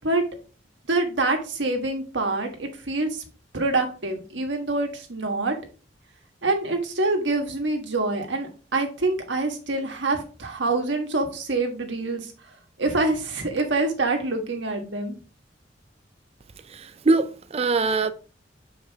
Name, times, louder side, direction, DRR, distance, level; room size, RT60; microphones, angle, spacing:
voice 1, 0.9-3.2 3.5-5.6 6.4-12.3 12.8-15.2, right 2 dB, 80° right, 1.5 m, -26 dB
voice 2, 16.7-18.1, right 3 dB, 35° right, 0.5 m, -23 dB
7.4 x 4.7 x 3.5 m
head